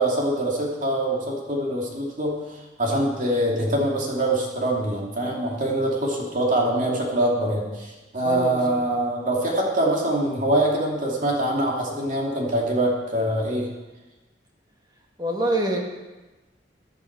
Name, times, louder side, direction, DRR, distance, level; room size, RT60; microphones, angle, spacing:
voice 1, 0.0-13.7, right 1 dB, 45° right, -2 dB, 2.5 m, -24 dB
voice 2, 8.2-8.8 15.2-15.8, right 1 dB, 25° right, 0 dB, 1.9 m, -25 dB
15.0 x 10.5 x 4.7 m, 1.1 s
head